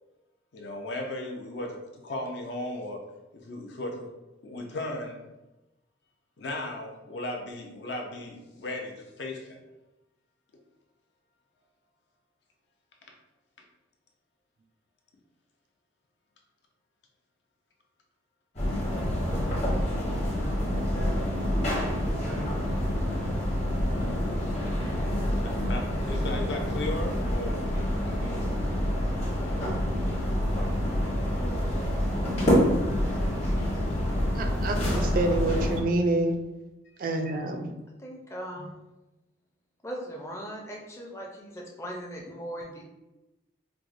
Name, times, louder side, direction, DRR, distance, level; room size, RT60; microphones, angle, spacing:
voice 1, 0.5-3.0 3.3-4.1 4.4-5.2 6.4-9.6 25.3-28.5 33.2-33.3, left 1 dB, 65° left, 1 dB, 0.5 m, -36 dB
sound 1, 18.6-35.8, equal, 35° left, 0.9 m, -27 dB
voice 2, 34.4-36.3 37.0-37.7, right 2 dB, 45° right, 5 dB, 0.3 m, -27 dB
voice 3, 38.0-38.8 39.8-42.8, equal, 15° left, -1 dB, 0.4 m, -39 dB
4.5 x 2.1 x 2.5 m, 1.0 s
head